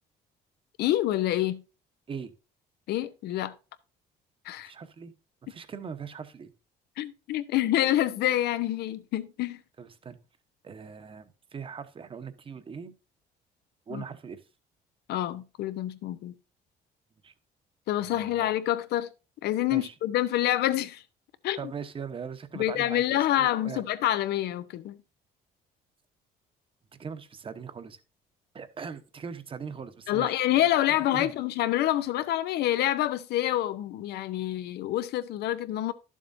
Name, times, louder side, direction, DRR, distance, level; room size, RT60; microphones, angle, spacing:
voice 1, 0.8-1.6 2.9-3.5 4.4-4.7 7.0-9.6 13.9-14.0 15.1-16.3 17.9-19.1 19.4-21.0 21.4-21.6 22.5-25.0 30.1-35.9, left 13 dB, 75° left, 0.7 m, -27 dB
voice 2, 4.6-5.1 5.5-6.5 9.8-10.2 10.6-12.9 13.9-14.4 17.2-17.3 18.0-18.5 19.7-19.9 21.6-23.8 26.9-28.0 28.5-31.3, right 6 dB, 30° right, 0.9 m, -40 dB
11.5 x 7.3 x 2.6 m
cardioid pair, 110°, 17 cm